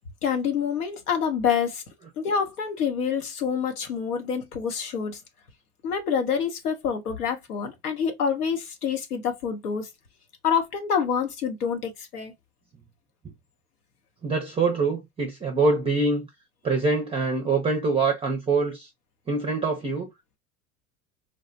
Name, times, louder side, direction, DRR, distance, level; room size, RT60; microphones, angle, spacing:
voice 1, 0.2-1.8 2.2-5.2 5.8-9.9 10.4-12.3, left 7 dB, 85° left, 0.8 m, -27 dB
voice 2, 14.2-16.3 16.6-18.9 19.3-20.1, right 3 dB, 15° right, 0.5 m, -24 dB
3.1 x 2.0 x 2.5 m
hypercardioid pair, 80°, 44 cm